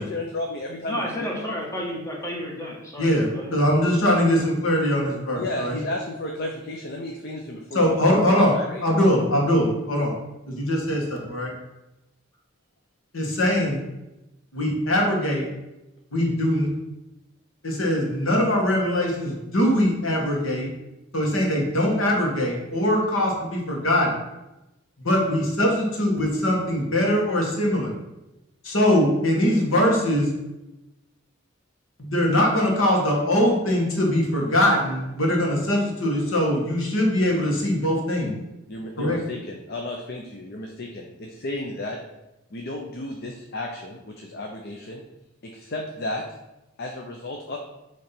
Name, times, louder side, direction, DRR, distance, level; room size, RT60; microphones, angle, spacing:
voice 1, 0.0-1.1 5.3-7.9 8.2-8.8 38.7-42.0 42.5-45.0 45.4-46.2 46.8-47.6, left 2 dB, 50° left, 1 dB, 0.7 m, -33 dB
voice 2, 0.9-3.6, equal, 15° left, -2 dB, 1.4 m, -31 dB
voice 3, 3.0-5.8 7.7-10.1 10.5-11.5 13.1-13.8 14.5-15.5 16.1-16.7 17.6-20.7 21.1-24.2 25.0-27.9 28.6-30.3 32.0-38.3 39.0-39.2, left 1 dB, 85° left, -1 dB, 1.7 m, -22 dB
6.8 x 3.3 x 5.8 m, 0.98 s
head